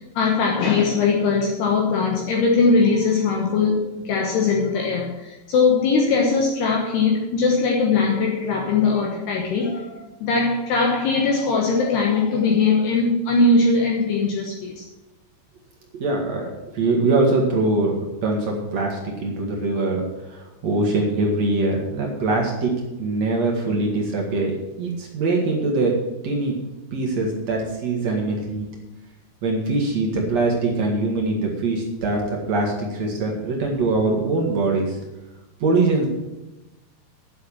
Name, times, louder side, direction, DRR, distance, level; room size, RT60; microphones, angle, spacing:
voice 1, 0.2-14.8, left 4 dB, 70° left, -1 dB, 2.9 m, -20 dB
voice 2, 15.9-16.5 16.7-24.5 24.8-25.9 26.2-26.6 26.9-28.7 29.4-35.0 35.6-36.1, right 2 dB, 50° right, -1 dB, 2.2 m, -23 dB
10.5 x 7.7 x 7.3 m, 1.0 s
omnidirectional pair, 5.7 m